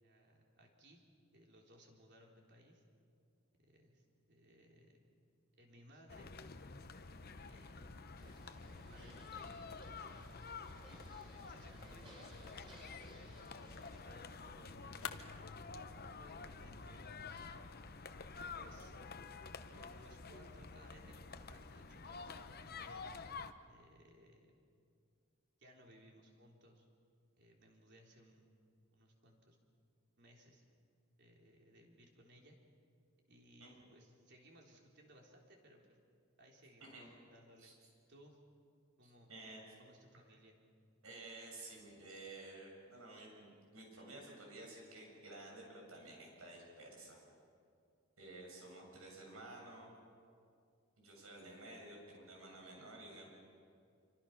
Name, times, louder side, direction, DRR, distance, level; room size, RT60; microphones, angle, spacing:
voice 1, 0.0-1.0 1.3-2.8 3.6-5.0 5.6-6.3 7.4-8.6 8.8-10.4 11.4-12.2 13.1-15.2 15.9-17.6 18.5-19.0 19.7-23.1 23.7-24.5 25.6-26.9 27.4-28.6 28.9-29.6 30.2-30.6 31.2-32.6 33.3-36.0 36.4-37.0 37.3-38.4 39.0-39.3 39.8-40.6, equal, 55° right, 0 dB, 3.7 m, -63 dB
sound 1, 6.1-23.5, left 4 dB, 45° left, 0.9 m, -50 dB
sound 2, 8.2-14.0, right 2 dB, 25° right, 6.2 m, -62 dB
sound 3, 12.6-18.6, left 7 dB, 85° left, 1.2 m, -55 dB
voice 2, 39.0-39.6 41.0-47.2 48.2-49.9 51.0-53.3, right 2 dB, 85° right, -1 dB, 7.5 m, -53 dB
27.5 x 24.5 x 5.9 m, 2.3 s
head